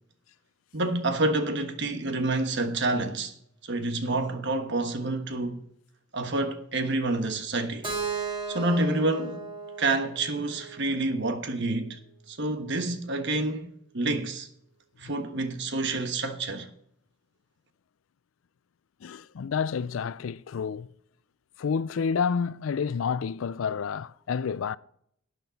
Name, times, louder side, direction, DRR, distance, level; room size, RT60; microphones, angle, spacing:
voice 1, 0.7-3.3 3.7-5.6 6.1-7.9 8.5-9.4 9.8-12.0 12.3-13.7 13.9-14.5 15.0-16.7, right 2 dB, 60° right, 1.3 m, -28 dB
Keyboard (musical), 7.8-11.7, right 4 dB, 25° right, 1.7 m, -36 dB
voice 2, 19.0-20.9 21.6-24.8, left 6 dB, 75° left, 0.4 m, -29 dB
12.0 x 9.1 x 4.1 m
head